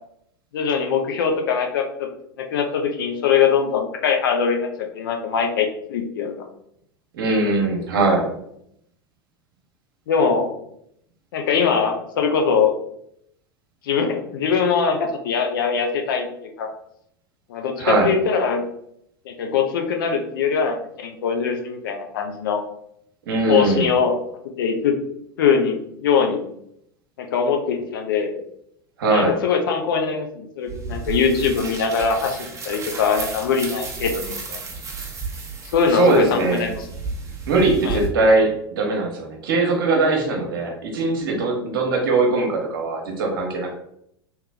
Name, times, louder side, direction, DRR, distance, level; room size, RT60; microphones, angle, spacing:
voice 1, 0.5-2.1 2.4-4.7 4.9-6.3 10.1-10.5 11.3-12.8 13.8-16.3 16.6-16.7 17.5-18.6 19.3-22.6 23.5-24.2 24.6-25.0 25.4-26.4 27.2-28.3 29.1-34.6 35.7-36.8 37.8-38.0, left 6 dB, 65° left, 4 dB, 0.7 m, -22 dB
voice 2, 7.1-8.3 17.8-18.1 23.3-23.9 29.0-29.3 35.9-36.7 37.5-43.7, right 2 dB, 65° right, 1 dB, 1.0 m, -20 dB
sound 1, 30.7-38.1, right 4 dB, 25° right, 0.9 m, -33 dB
3.2 x 3.1 x 3.2 m, 0.74 s
figure-of-eight pair, 85°, 12 cm